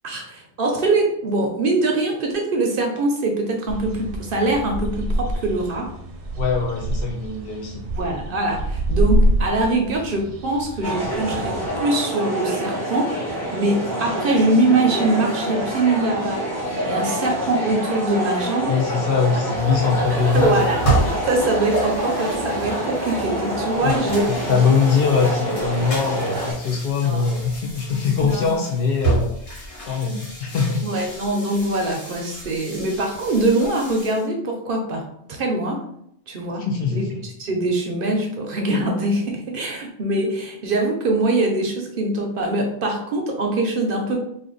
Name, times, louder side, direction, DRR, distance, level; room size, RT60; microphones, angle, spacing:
voice 1, 0.0-5.9 7.9-16.5 16.9-18.9 20.3-20.8 21.3-24.7 27.0-27.3 28.2-28.6 30.8-35.1 35.4-35.8 36.3-44.2, right 2 dB, 60° right, 2 dB, 0.7 m, -23 dB
sound 1, 3.7-11.8, right 1 dB, 90° right, 0.9 m, -26 dB
voice 2, 6.4-7.9 18.6-20.8 23.8-24.0 24.3-29.4 29.9-30.8 36.6-37.2, left 5 dB, 60° left, 1 dB, 0.7 m, -22 dB
sound 2, 10.8-26.5, right 1 dB, 20° left, 1.1 m, -26 dB
sound 3, 19.6-34.3, right 2 dB, 80° left, 1.4 m, -30 dB
2.5 x 2.4 x 3.7 m, 0.72 s
omnidirectional pair, 1.2 m